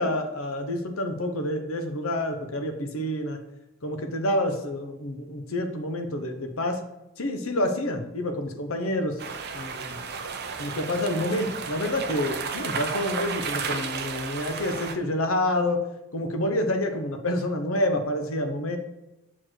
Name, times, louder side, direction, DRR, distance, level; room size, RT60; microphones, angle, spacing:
voice 1, 0.0-3.4 3.8-6.8 7.2-9.2 9.5-10.0 10.6-15.8 16.1-18.8, left 1 dB, 65° left, 6 dB, 0.9 m, -28 dB
sound 1, 9.2-14.9, right 5 dB, 45° right, 0.7 m, -33 dB
6.1 x 4.5 x 4.5 m, 0.92 s
head